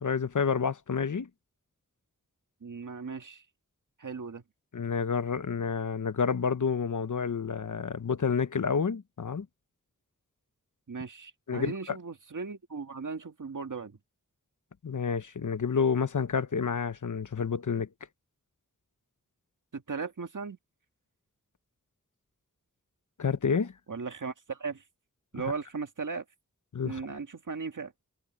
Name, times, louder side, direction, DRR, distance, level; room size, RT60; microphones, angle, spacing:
voice 1, 0.0-1.3 4.7-9.5 11.5-12.0 14.8-17.9 23.2-23.7 26.7-27.1, left 6 dB, 75° left, 0.9 m, -29 dB
voice 2, 2.6-3.4 4.0-4.4 10.9-14.0 19.7-20.6 23.9-24.8 25.3-26.2 26.8-27.9, right 5 dB, 85° right, 1.8 m, -37 dB
wide cardioid pair, 75°, 30 cm